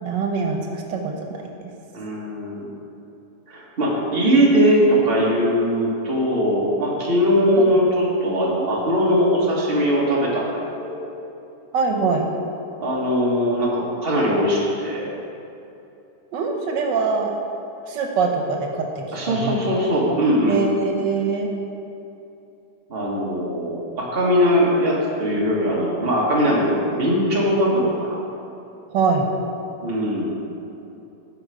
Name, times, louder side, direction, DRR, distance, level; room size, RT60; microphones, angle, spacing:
voice 1, 0.0-1.7 7.6-7.8 11.7-12.3 16.3-17.3 17.9-18.7 19.0-19.6 20.5-21.5 28.9-29.3, right 5 dB, 90° right, 2 dB, 1.6 m, -23 dB
voice 2, 1.9-2.7 3.5-10.5 10.8-11.0 12.8-15.1 19.1-20.6 22.9-28.2 29.8-30.3, equal, 35° right, -5 dB, 1.8 m, -20 dB
13.0 x 4.8 x 4.9 m, 2.8 s
omnidirectional pair, 1.9 m